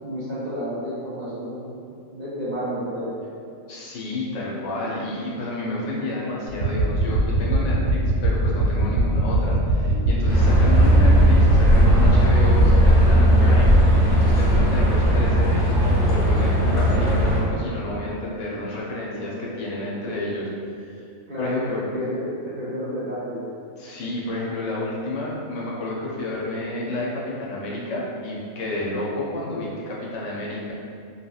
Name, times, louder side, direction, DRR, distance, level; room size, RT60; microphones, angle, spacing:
voice 1, 0.0-1.7 2.1-3.1 19.1-19.8 21.3-21.6 21.9-23.4, equal, 45° right, -12 dB, 0.7 m, -31 dB
voice 2, 3.7-20.5 20.9-21.1 21.4-21.8 23.8-30.7, left 2 dB, 70° left, -5 dB, 0.9 m, -30 dB
sound 1, 6.5-12.8, right 1 dB, 85° right, 1.0 m, -22 dB
sound 2, 10.3-17.4, equal, 5° left, 0.6 m, -17 dB
2.8 x 2.7 x 2.3 m, 2.4 s
omnidirectional pair, 1.4 m